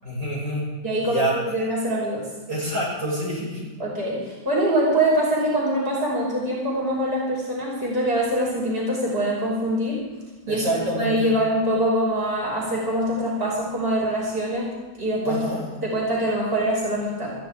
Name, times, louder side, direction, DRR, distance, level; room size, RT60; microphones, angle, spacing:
voice 1, 0.0-0.7 1.0-1.4 2.5-3.7 10.5-11.3 15.3-15.6, right 1 dB, 70° right, -6 dB, 6.9 m, -27 dB
voice 2, 0.8-2.3 3.8-10.0 10.5-15.4 15.8-17.3, right 1 dB, 30° right, -5 dB, 6.0 m, -24 dB
21.5 x 15.0 x 3.6 m, 1.2 s
omnidirectional pair, 2.1 m